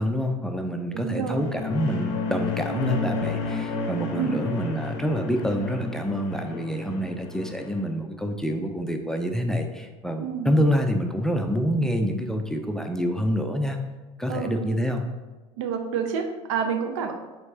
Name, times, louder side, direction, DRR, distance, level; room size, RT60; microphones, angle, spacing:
voice 1, 0.0-13.8 14.2-15.0, equal, 5° left, 4 dB, 0.4 m, -27 dB
voice 2, 0.9-1.6 4.2-4.4 10.2-10.5 14.3-14.6 15.6-17.1, right 7 dB, 75° right, 5 dB, 0.5 m, -28 dB
sound 1, 1.2-7.8, left 3 dB, 70° left, 0.6 m, -31 dB
4.4 x 3.8 x 2.7 m, 1.2 s
hypercardioid pair, 75°, 16 cm